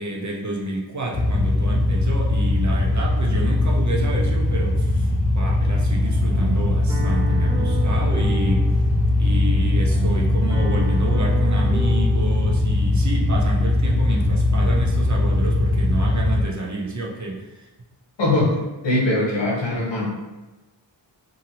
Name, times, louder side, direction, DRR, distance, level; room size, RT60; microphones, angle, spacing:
voice 1, 0.0-8.7 9.2-17.7, right 2 dB, 40° right, -1 dB, 0.5 m, -29 dB
sound 1, 1.1-16.4, left 2 dB, 35° left, 0.4 m, -20 dB
sound 2, 5.9-12.6, equal, 10° right, 1.2 m, -33 dB
voice 2, 18.2-18.5 18.8-20.1, left 2 dB, 65° left, -4 dB, 1.0 m, -21 dB
2.7 x 2.7 x 2.8 m, 1.1 s
wide cardioid pair, 85°, 46 cm